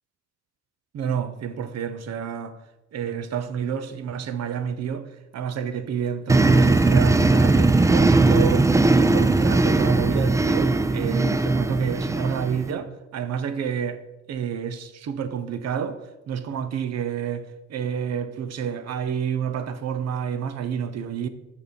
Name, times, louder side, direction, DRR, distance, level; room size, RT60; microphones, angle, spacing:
voice 1, 0.9-2.5 2.9-14.0 14.3-16.0 16.3-21.3, right 7 dB, 60° right, 0.7 m, -29 dB
sound 1, 6.3-12.7, right 2 dB, 10° right, 0.3 m, -19 dB
6.5 x 4.9 x 5.2 m
cardioid pair, 90°, 30 cm